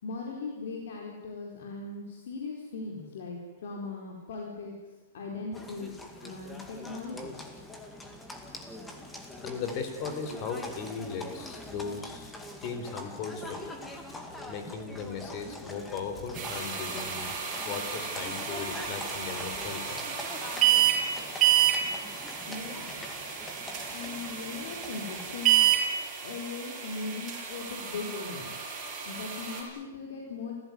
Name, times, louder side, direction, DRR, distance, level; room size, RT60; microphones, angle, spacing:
voice 1, 0.0-4.7 5.1-5.9 6.2-7.4 22.5-22.9 23.9-25.6 26.2-28.5 29.0-30.5, left 4 dB, 60° left, 0 dB, 4.5 m, -39 dB
Livestock farm animals working animals, 5.5-25.5, left 1 dB, 5° left, 2.2 m, -44 dB
voice 2, 9.4-12.3 12.6-13.7 14.5-17.3 17.6-20.1, left 5 dB, 35° left, 7 dB, 4.0 m, -37 dB
sound 1, 16.3-29.6, right 10 dB, 20° right, 6.8 m, -30 dB
27.5 x 16.0 x 9.6 m, 1.2 s
hypercardioid pair, 165°, 0 cm